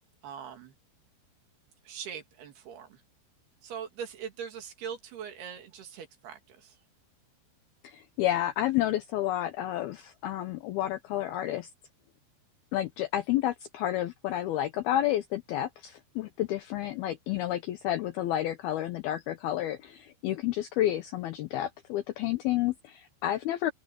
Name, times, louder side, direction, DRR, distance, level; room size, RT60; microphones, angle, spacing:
voice 1, 0.2-0.7 1.9-3.0 3.6-6.8, right 7 dB, 60° right, 3.9 m, -41 dB
voice 2, 7.8-11.7 12.7-23.7, left 13 dB, 80° left, 2.2 m, -30 dB
open air
omnidirectional pair, 5.4 m